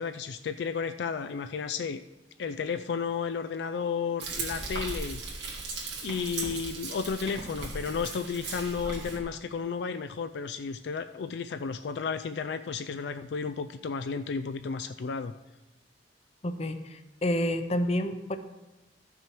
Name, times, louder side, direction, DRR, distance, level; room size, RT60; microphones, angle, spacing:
voice 1, 0.0-2.0 2.4-5.2 6.0-15.3, left 5 dB, 70° left, 9 dB, 0.4 m, -33 dB
Frying (food), 4.2-9.2, right 3 dB, 85° right, 1.9 m, -37 dB
voice 2, 16.4-18.4, left 1 dB, 35° left, 9 dB, 0.7 m, -29 dB
13.0 x 6.0 x 4.6 m, 1.0 s
head